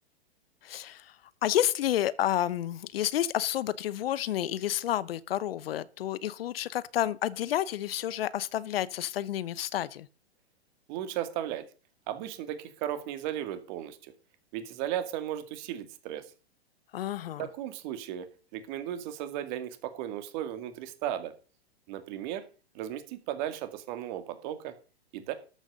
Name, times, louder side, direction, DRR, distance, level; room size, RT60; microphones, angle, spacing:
voice 1, 0.6-10.1 16.9-17.5, left 12 dB, 60° left, 0.9 m, -30 dB
voice 2, 10.9-11.7 12.1-14.1 14.5-16.3 17.4-18.3 18.5-21.3 21.9-22.4 22.7-24.7 25.1-25.3, right 11 dB, 45° right, 2.2 m, -35 dB
13.0 x 6.3 x 6.5 m
hypercardioid pair, 115°, 32 cm